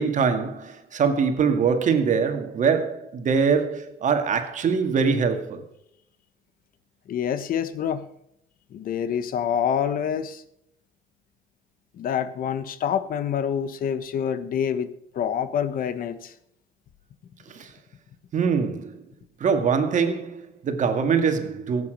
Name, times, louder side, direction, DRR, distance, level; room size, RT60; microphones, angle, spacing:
voice 1, 0.0-5.6 17.5-17.7 18.3-19.1 19.4-21.9, right 6 dB, 45° right, 2.1 m, -23 dB
voice 2, 7.1-8.1 8.7-10.4 11.9-14.9 15.1-16.3, left 8 dB, 60° left, 1.2 m, -26 dB
16.5 x 8.6 x 6.6 m
cardioid pair, 110°, 17 cm